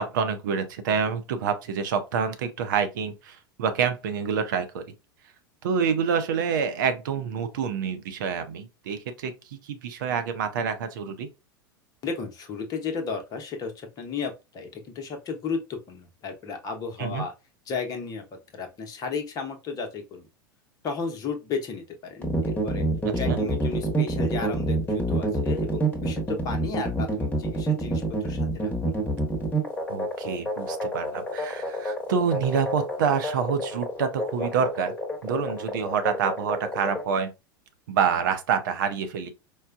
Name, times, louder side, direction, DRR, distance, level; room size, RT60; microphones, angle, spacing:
voice 1, 0.0-4.8 5.6-11.3 17.0-17.2 23.0-23.4 29.9-35.0 35.2-37.3 37.9-39.3, right 6 dB, 60° right, 0.7 m, -27 dB
voice 2, 12.0-17.3 17.7-20.3 20.8-22.8 23.1-28.9, left 5 dB, 30° left, 0.8 m, -34 dB
sound 1, 22.2-37.0, right 2 dB, 15° left, 1.1 m, -27 dB
4.6 x 2.2 x 2.4 m
figure-of-eight pair, 85°, 12 cm